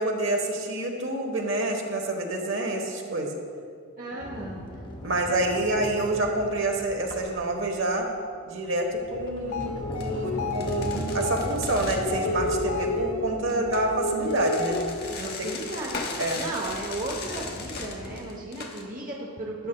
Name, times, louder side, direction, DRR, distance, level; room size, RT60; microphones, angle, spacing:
voice 1, 0.0-3.3 5.0-8.1 8.5-14.8 15.2-15.3 16.2-16.4, right 1 dB, 55° right, 2 dB, 1.1 m, -27 dB
voice 2, 4.0-4.6 13.4-13.8 15.1-16.0 16.3-19.7, right 2 dB, 35° right, -2 dB, 0.7 m, -35 dB
Sliding door, 4.2-8.0 8.6-18.2, left 1 dB, 20° left, 0.7 m, -39 dB
sound 1, 9.4-15.2, left 2 dB, 80° left, 0.7 m, -31 dB
sound 2, 9.5-9.7 10.0-10.1 10.5-12.1 13.5-18.8, left 4 dB, 45° left, 0.9 m, -38 dB
12.5 x 9.6 x 2.2 m, 2.3 s
head